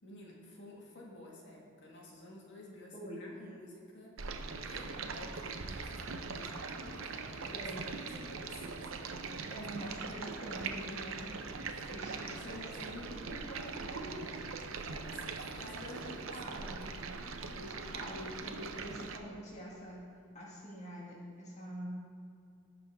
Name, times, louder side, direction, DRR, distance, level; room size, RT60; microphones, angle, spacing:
voice 1, 0.0-11.0 11.5-13.3 14.0-14.4 14.8-16.9 17.2-17.6, left 1 dB, 55° left, -3 dB, 2.0 m, -53 dB
Stream, 4.2-19.2, right 4 dB, 65° right, 0.7 m, -41 dB
voice 2, 7.5-7.8 9.5-11.2 11.9-14.5 15.6-16.9 17.5-20.0 20.3-22.0, equal, 35° left, -5 dB, 1.8 m, -45 dB
18.5 x 6.2 x 3.6 m, 2.5 s
head